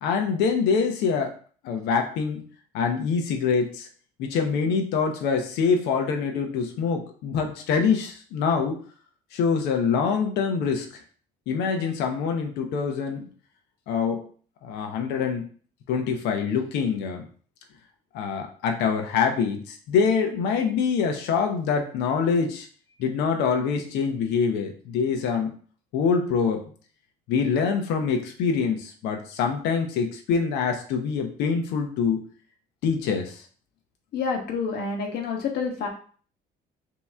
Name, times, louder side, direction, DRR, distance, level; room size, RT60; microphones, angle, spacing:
voice 1, 0.0-1.3 1.6-2.4 2.7-3.9 4.2-8.8 9.3-11.0 11.5-13.3 13.9-14.3 14.6-15.5 15.9-17.3 18.1-22.7 23.0-25.6 25.9-26.6 27.3-32.3 32.8-33.4, left 6 dB, 90° left, 4 dB, 0.8 m, -25 dB
voice 2, 34.1-35.9, left 5 dB, 70° left, 2 dB, 1.2 m, -28 dB
3.6 x 2.9 x 4.3 m, 0.44 s
cardioid pair, 110°, 17 cm